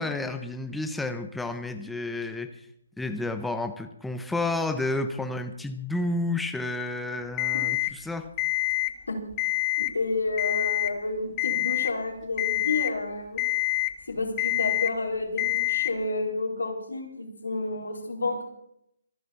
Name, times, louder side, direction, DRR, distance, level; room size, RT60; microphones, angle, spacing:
voice 1, 0.0-2.7 3.0-8.3, left 2 dB, 5° left, 7 dB, 0.9 m, -31 dB
Alarm, 7.4-7.9 8.4-8.9 9.3-9.9 10.4-10.9 11.4-11.9 12.4-12.9 13.4-13.9 14.4-14.9 15.4-15.9, left 22 dB, 20° left, 1.1 m, -26 dB
voice 2, 9.8-13.4 14.1-18.4, left 2 dB, 75° left, 1 dB, 4.1 m, -30 dB
26.0 x 9.7 x 4.3 m, 0.77 s
figure-of-eight pair, 140°, 0 cm